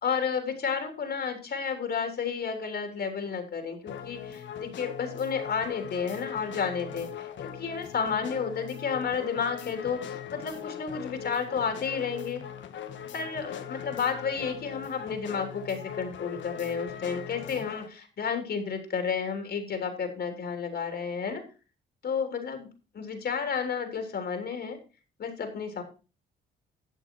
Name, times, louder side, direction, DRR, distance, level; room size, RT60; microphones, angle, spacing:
voice 1, 0.0-12.4 13.1-21.4 22.0-24.8 25.2-25.8, left 6 dB, 55° left, 5 dB, 3.3 m, -31 dB
sound 1, 3.9-17.9, left 9 dB, 70° left, 1.4 m, -40 dB
12.0 x 7.5 x 4.6 m, 0.33 s
cardioid pair, 90°, 20 cm